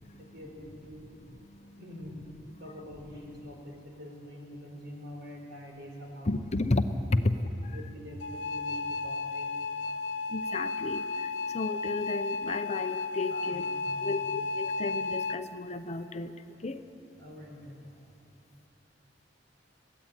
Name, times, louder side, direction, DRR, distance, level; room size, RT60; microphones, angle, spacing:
voice 1, 0.2-1.2 1.8-2.2 2.6-6.3 7.1-7.2 7.7-9.5 9.8-10.0 13.3-14.2 16.5-16.7 17.2-18.0, equal, 65° right, 1 dB, 4.9 m, -46 dB
voice 2, 1.1-1.8 6.2-7.4 7.6-7.8 10.3-13.8 14.0-16.3 16.6-16.8, left 2 dB, 40° left, 9 dB, 0.8 m, -33 dB
sound 1, 8.2-15.4, left 4 dB, 85° left, 0.9 m, -33 dB
22.0 x 15.5 x 9.1 m, 2.6 s
head